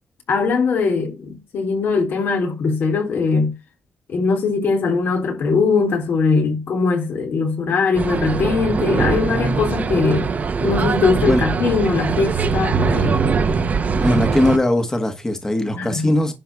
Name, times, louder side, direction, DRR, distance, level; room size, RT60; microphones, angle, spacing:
voice 1, 0.3-3.6 4.1-10.3 10.6-13.2 15.7-16.2, left 4 dB, 70° left, 3.4 m, -20 dB
sound 1, 7.9-14.6, right 5 dB, 45° right, 1.3 m, -21 dB
voice 2, 14.0-16.3, left 1 dB, 15° left, 1.6 m, -19 dB
11.5 x 4.6 x 5.9 m
cardioid pair, 125°, 4 cm